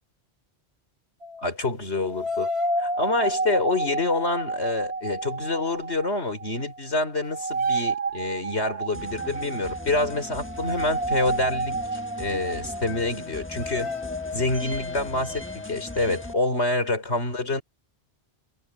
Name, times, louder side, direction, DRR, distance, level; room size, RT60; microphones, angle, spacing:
sound 1, 1.2-1.5 2.0-6.8 7.1-16.6, right 2 dB, 70° right, 2.1 m, -31 dB
voice 1, 1.4-2.5 2.8-11.8 12.2-13.9 14.3-17.6, left 2 dB, 90° left, 5.0 m, -27 dB
sound 2, 8.9-16.3, left 1 dB, 10° left, 1.5 m, -40 dB
omnidirectional pair, 1.1 m